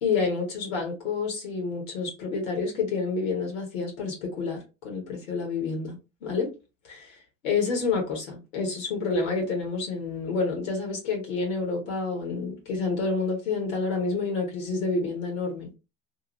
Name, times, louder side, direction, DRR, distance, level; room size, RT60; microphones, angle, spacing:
voice 1, 0.0-5.9 6.2-6.5 6.9-7.1 7.4-15.7, left 4 dB, 80° left, 1.2 m, -28 dB
2.7 x 2.3 x 3.0 m
hypercardioid pair, 65°, 39 cm